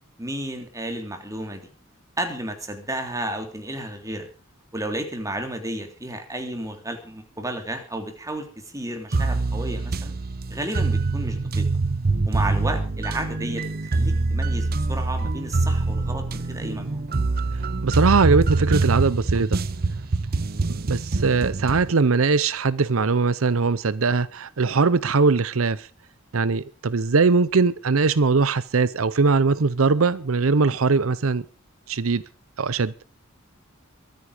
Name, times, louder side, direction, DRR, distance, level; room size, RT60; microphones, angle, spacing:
voice 1, 0.2-1.7 2.2-4.3 4.7-10.1 10.5-11.7 12.2-17.0, right 1 dB, 15° right, 3.2 m, -32 dB
sound 1, 9.1-21.9, right 3 dB, 50° right, 0.7 m, -24 dB
voice 2, 17.8-19.6 20.7-25.9 26.3-31.4 31.9-32.2 32.6-32.9, right 4 dB, 80° right, 0.7 m, -21 dB
23.0 x 9.5 x 5.0 m
head